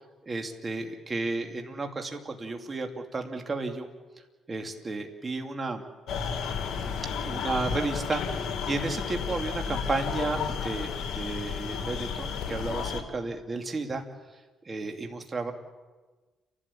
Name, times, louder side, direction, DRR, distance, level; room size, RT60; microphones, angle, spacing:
voice 1, 0.3-3.9 4.5-5.8 7.2-14.0 14.6-15.5, right 3 dB, 30° right, 4 dB, 2.7 m, -33 dB
sound 1, 6.1-13.0, left 6 dB, 70° left, 2.5 m, -32 dB
30.0 x 12.5 x 8.7 m, 1.2 s
cardioid pair, 90°, 0 cm